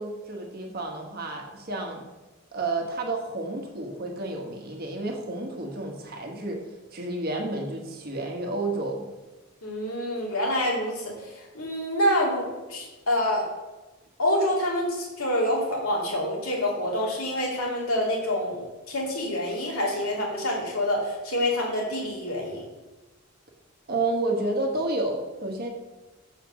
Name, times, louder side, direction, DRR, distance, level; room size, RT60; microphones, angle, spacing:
voice 1, 0.0-2.1 2.5-6.6 6.9-9.1 23.9-25.7, right 2 dB, 45° right, 1 dB, 1.3 m, -30 dB
voice 2, 9.6-13.4 14.2-22.6, left 1 dB, 80° left, -2 dB, 2.3 m, -27 dB
6.6 x 5.0 x 6.2 m, 1.2 s
head